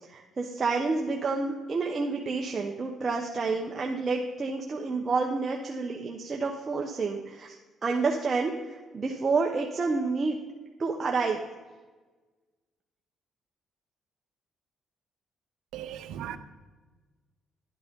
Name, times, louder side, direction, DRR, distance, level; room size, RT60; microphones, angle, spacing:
voice 1, 0.1-10.4 10.8-11.4, right 4 dB, 35° right, 1 dB, 1.1 m, -29 dB
voice 2, 15.7-16.4, right 10 dB, 85° right, 11 dB, 0.8 m, -37 dB
11.5 x 8.8 x 5.4 m, 1.3 s
cardioid pair, 90°, 0 cm